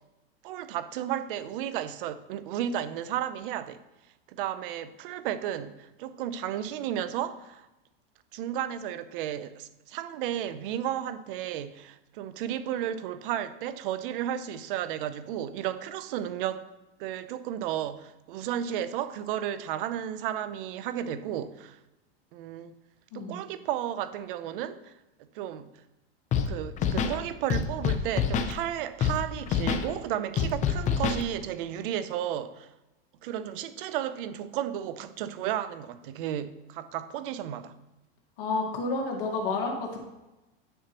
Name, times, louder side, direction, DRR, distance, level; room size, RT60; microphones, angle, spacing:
voice 1, 0.4-3.8 4.3-7.7 8.3-16.6 17.0-21.8 22.3-22.7 23.1-24.9 25.3-25.7 26.5-32.7 33.2-37.7, right 11 dB, 60° right, 14 dB, 0.7 m, -33 dB
Scratching (performance technique), 26.3-26.5 26.8-27.2 27.5-28.5 29.0-29.2 29.5-29.8 30.4-31.2, left 7 dB, 25° left, 0.6 m, -26 dB
voice 2, 38.4-40.0, left 3 dB, 55° left, 0 dB, 2.0 m, -30 dB
10.0 x 6.4 x 3.0 m, 1.0 s
supercardioid pair, 130°, 31 cm